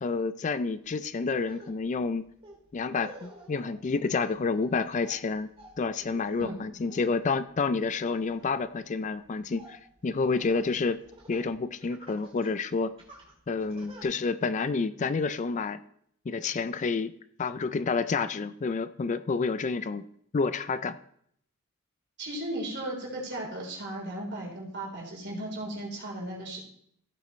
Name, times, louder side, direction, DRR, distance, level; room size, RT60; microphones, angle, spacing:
voice 1, 0.0-2.3 2.7-5.5 5.8-11.0 11.3-13.0 13.5-15.8 16.3-17.1 17.4-20.1 20.3-21.0, left 4 dB, 35° left, 13 dB, 0.3 m, -29 dB
Laughter, 0.7-0.9 1.3-11.5 11.8-12.5 13.0-14.0, right 1 dB, 25° right, 2.5 m, -52 dB
voice 2, 22.2-26.6, right 1 dB, 50° right, -2 dB, 3.9 m, -36 dB
15.0 x 8.6 x 3.1 m, 0.69 s
head